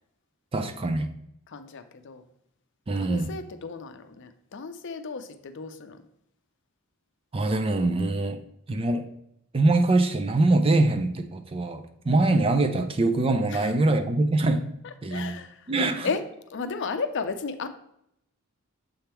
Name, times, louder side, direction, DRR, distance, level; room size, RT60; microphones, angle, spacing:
voice 1, 0.5-1.1 2.9-3.3 7.3-8.4 8.7-9.1 9.5-14.7 15.0-15.3 15.7-16.1, right 2 dB, 25° right, 0.4 m, -23 dB
voice 2, 1.5-2.2 3.0-6.1 12.1-12.3 13.5-13.7 14.8-15.7 16.0-16.2 16.5-17.7, left 4 dB, 55° left, 0.5 m, -34 dB
6.9 x 3.5 x 4.4 m
head